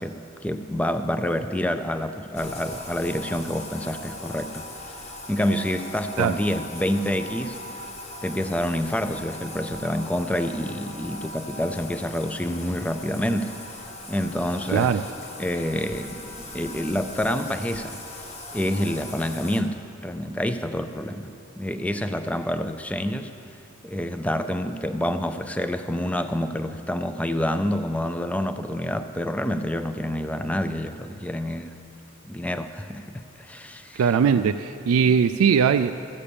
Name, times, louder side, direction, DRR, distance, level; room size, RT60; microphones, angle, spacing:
voice 1, 0.0-5.0 5.3-7.6 8.2-13.5 14.1-15.0 15.4-18.0 18.5-23.3 23.8-31.7 32.2-34.2, left 1 dB, 5° left, 9 dB, 0.4 m, -28 dB
Bathtub (filling or washing), 2.3-19.6, left 2 dB, 30° left, 1.1 m, -39 dB
voice 2, 14.7-15.0 34.0-35.9, right 6 dB, 90° right, 10 dB, 0.3 m, -20 dB
14.0 x 8.7 x 6.8 m, 2.7 s
head